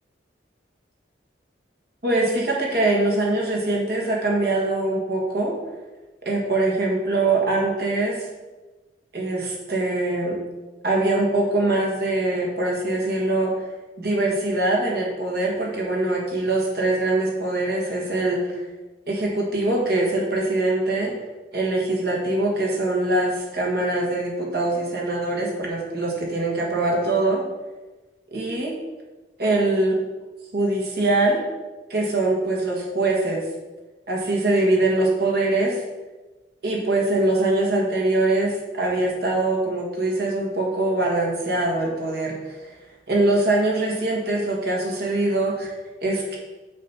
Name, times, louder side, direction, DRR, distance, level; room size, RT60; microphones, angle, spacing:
voice 1, 2.0-5.5 6.2-8.3 9.1-10.4 10.8-13.6 14.0-18.6 19.1-21.1 21.5-27.4 28.3-28.7 29.4-30.0 30.5-31.4 31.9-33.4 34.1-35.8 36.6-42.7 43.1-45.7 46.0-46.4, right 2 dB, 60° right, -2 dB, 1.5 m, -23 dB
7.2 x 2.8 x 5.9 m, 1.2 s
head